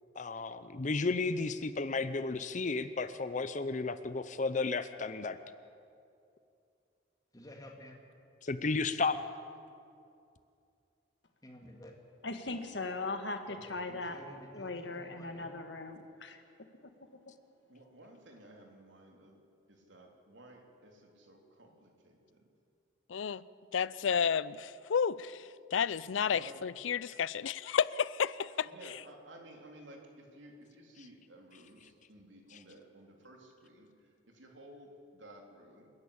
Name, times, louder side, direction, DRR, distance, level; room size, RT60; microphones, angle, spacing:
voice 1, 0.2-5.4 8.4-9.2, left 3 dB, 40° left, 12 dB, 0.6 m, -33 dB
voice 2, 7.3-8.0 11.4-12.0 13.5-15.6, left 1 dB, 20° left, 1 dB, 2.5 m, -52 dB
voice 3, 12.2-14.2 14.5-16.4, left 2 dB, 65° left, 7 dB, 1.7 m, -39 dB
voice 4, 17.7-19.4 19.7-22.5 26.3-26.7 28.6-35.9, right 1 dB, 80° right, 1 dB, 3.3 m, -55 dB
voice 5, 23.1-23.4 23.7-28.7, left 7 dB, 85° left, 18 dB, 0.5 m, -31 dB
28.0 x 10.5 x 8.7 m, 2.5 s
head